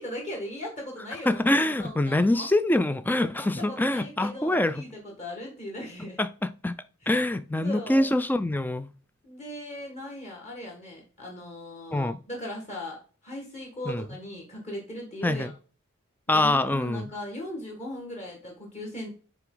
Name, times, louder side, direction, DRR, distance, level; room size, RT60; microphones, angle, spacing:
voice 1, 0.0-2.5 3.4-6.2 7.0-7.2 7.5-8.2 9.2-15.5 16.3-19.1, left 1 dB, 30° left, 1.9 m, -39 dB
voice 2, 1.3-4.8 6.2-6.3 6.6-6.7 7.1-8.9 11.9-12.2 13.9-14.0 15.2-15.5 16.3-17.1, left 1 dB, 10° left, 0.3 m, -24 dB
9.4 x 3.4 x 3.8 m
head